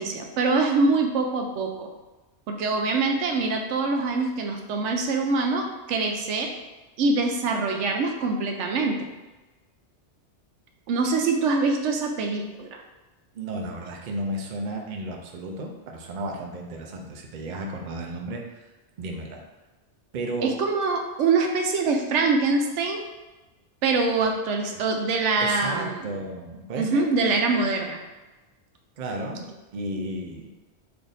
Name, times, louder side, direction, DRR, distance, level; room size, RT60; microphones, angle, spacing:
voice 1, 0.0-1.9 2.5-6.5 7.0-9.1 10.9-12.8 20.4-23.0 23.8-26.1 26.8-28.0, right 3 dB, 90° right, 3 dB, 0.9 m, -24 dB
voice 2, 13.3-18.6 19.0-19.4 20.1-20.5 24.7-24.8 25.4-27.1 29.0-30.5, right 1 dB, 55° right, 1 dB, 0.6 m, -33 dB
3.4 x 2.6 x 3.9 m, 1.1 s
omnidirectional pair, 1.2 m